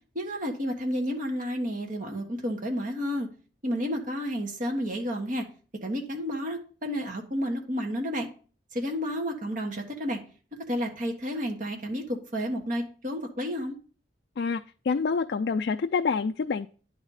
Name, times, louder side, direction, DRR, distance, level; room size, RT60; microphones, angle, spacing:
voice 1, 0.1-3.3 3.6-5.5 5.8-8.3 8.7-10.2 10.7-13.7, equal, 45° right, 3 dB, 1.4 m, -31 dB
voice 2, 14.4-16.7, left 5 dB, 60° left, 6 dB, 0.4 m, -27 dB
10.0 x 4.1 x 4.9 m, 0.39 s
head